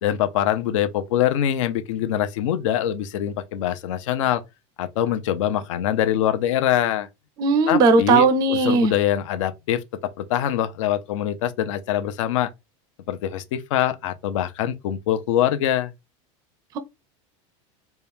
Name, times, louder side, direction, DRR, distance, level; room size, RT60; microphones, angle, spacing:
voice 1, 0.0-4.4 4.8-7.1 7.7-9.8 10.2-12.5 13.1-15.9, left 11 dB, 80° left, 0.7 m, -24 dB
voice 2, 7.4-8.9, right 4 dB, 25° right, 0.4 m, -17 dB
4.2 x 2.3 x 3.5 m
supercardioid pair, 180°, 16 cm